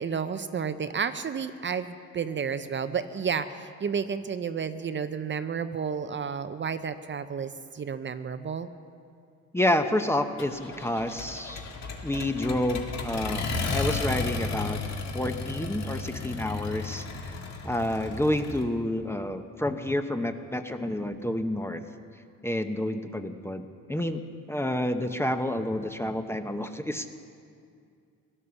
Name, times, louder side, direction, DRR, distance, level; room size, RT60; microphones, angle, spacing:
voice 1, 0.0-8.7, right 6 dB, 40° right, 10 dB, 0.7 m, -31 dB
voice 2, 9.5-11.6 12.0-14.8 15.1-17.3 17.6-21.8 22.4-24.2 24.5-27.1, left 1 dB, 10° left, 7 dB, 0.9 m, -29 dB
Accelerating revving vroom, 10.4-18.6, left 3 dB, 60° left, 2.3 m, -34 dB
18.0 x 11.0 x 7.0 m, 2.3 s
cardioid pair, 90°, 30 cm